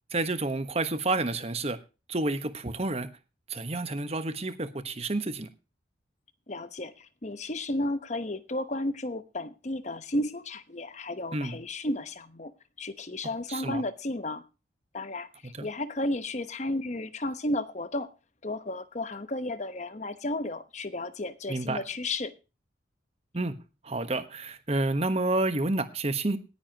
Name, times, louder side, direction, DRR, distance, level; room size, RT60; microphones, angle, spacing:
voice 1, 0.1-1.8 2.1-3.1 3.5-5.5 11.3-11.6 13.5-13.8 15.6-15.7 21.5-21.8 23.3-23.6 23.8-26.4, right 2 dB, 35° right, 11 dB, 1.2 m, -29 dB
voice 2, 6.5-12.5 12.8-14.4 14.9-18.1 18.4-22.3, left 1 dB, 40° left, 12 dB, 1.0 m, -33 dB
18.5 x 9.9 x 2.9 m, 0.30 s
head